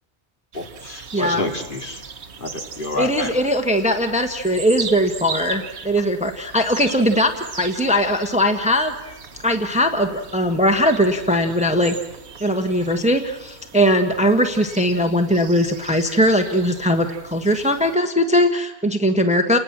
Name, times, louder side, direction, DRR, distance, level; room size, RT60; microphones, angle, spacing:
voice 1, 0.5-2.0 2.4-3.3, left 2 dB, 50° left, 2 dB, 2.8 m, -28 dB
sound 1, 0.5-18.0, right 5 dB, 70° right, 1.5 m, -38 dB
voice 2, 1.1-1.4 3.0-8.9 9.4-11.9 12.4-19.6, equal, 5° right, 6 dB, 1.3 m, -20 dB
29.5 x 20.0 x 7.4 m, 0.91 s
omnidirectional pair, 1.2 m